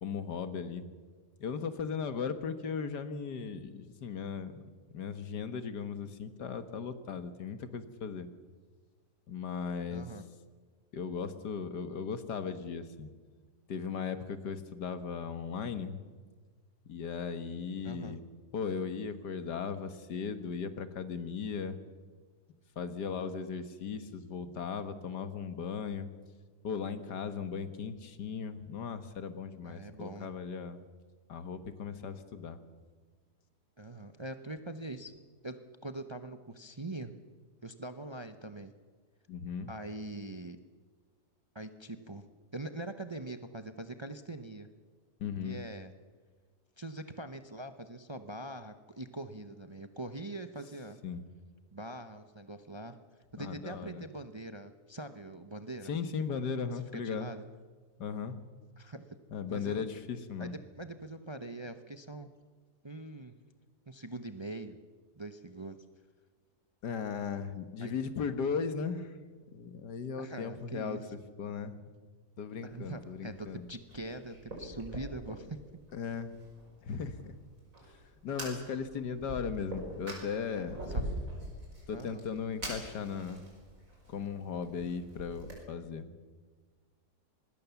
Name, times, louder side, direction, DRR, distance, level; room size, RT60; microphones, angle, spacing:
voice 1, 0.0-0.8 1.4-4.6 4.9-8.3 9.3-10.0 10.9-13.1 13.7-16.0 16.9-18.2 18.5-21.8 22.8-26.1 26.6-30.8 31.3-32.6 39.3-39.7 45.2-45.6 51.0-51.3 53.4-54.0 55.9-57.3 58.0-58.4 59.3-60.5 66.8-69.2 69.5-71.0 71.4-71.9 72.4-73.7 75.9-76.3 76.8-77.3 78.2-80.9 81.9-83.4 84.1-86.1, left 6 dB, 85° left, 10 dB, 2.0 m, -37 dB
voice 2, 9.9-10.2 17.8-18.2 29.6-30.3 33.8-35.1 35.4-37.1 37.6-38.7 39.7-40.6 41.5-42.3 42.5-44.7 45.4-45.9 46.8-51.0 51.7-53.0 53.3-55.9 56.9-57.4 58.8-59.1 59.5-59.8 60.4-62.3 62.8-63.4 63.9-64.8 65.2-65.8 67.8-68.0 70.2-71.0 72.6-75.6 80.5-81.0 81.9-82.3, right 2 dB, 25° right, 9 dB, 0.7 m, -43 dB
Fire, 72.6-85.5, right 1 dB, 55° right, 5.9 m, -44 dB
25.0 x 20.0 x 7.1 m, 1.5 s
omnidirectional pair, 1.7 m